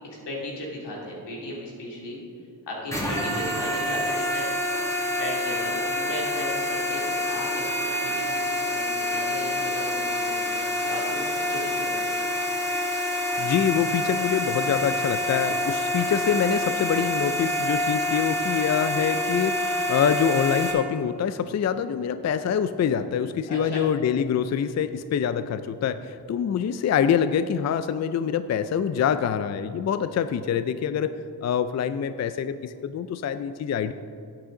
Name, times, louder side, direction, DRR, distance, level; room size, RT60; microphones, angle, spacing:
voice 1, 0.3-2.2 2.7-4.5 4.9-8.3 8.7-12.3 12.9-13.1 23.5-23.9, left 1 dB, 85° left, -3 dB, 2.7 m, -36 dB
sound 1, 2.9-20.7, left 1 dB, 5° left, 1.8 m, -27 dB
voice 2, 13.4-31.1 31.4-33.9, left 8 dB, 45° left, 11 dB, 0.4 m, -25 dB
11.0 x 8.8 x 3.8 m, 2.5 s
cardioid pair, 80°, 41 cm